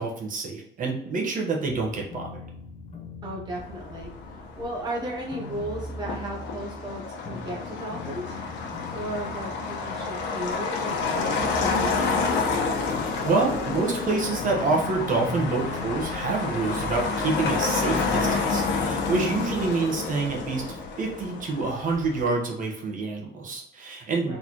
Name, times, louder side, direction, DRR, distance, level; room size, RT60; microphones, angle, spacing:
voice 1, 0.0-2.4 13.0-24.4, right 3 dB, 45° right, 0 dB, 1.0 m, -27 dB
sound 1, 1.6-13.7 14.0-20.4, left 2 dB, 35° left, 0.8 m, -42 dB
voice 2, 3.2-12.6 19.3-19.6 24.2-24.4, equal, 25° right, -2 dB, 0.8 m, -35 dB
Motor vehicle (road), 3.5-22.3, left 4 dB, 90° left, 1.0 m, -29 dB
4.2 x 3.4 x 2.9 m, 0.73 s
cardioid pair, 165°, 19 cm